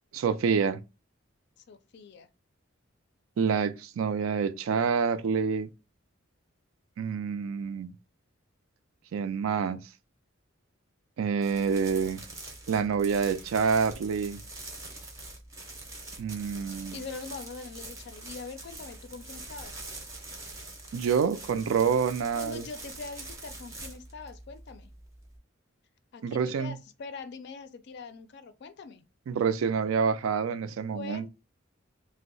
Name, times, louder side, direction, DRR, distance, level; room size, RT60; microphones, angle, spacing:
voice 1, 0.1-0.8 3.4-5.7 7.0-7.9 9.1-9.8 11.2-12.2 12.7-14.4 16.2-17.0 20.9-22.6 26.2-26.7 29.3-31.3, right 6 dB, 90° right, 0.4 m, -27 dB
voice 2, 1.6-2.3 16.9-19.9 22.3-24.9 26.1-29.0 30.9-31.3, left 4 dB, 55° left, 0.4 m, -43 dB
sound 1, 11.4-25.4, right 2 dB, 15° right, 0.5 m, -44 dB
2.6 x 2.0 x 3.8 m
head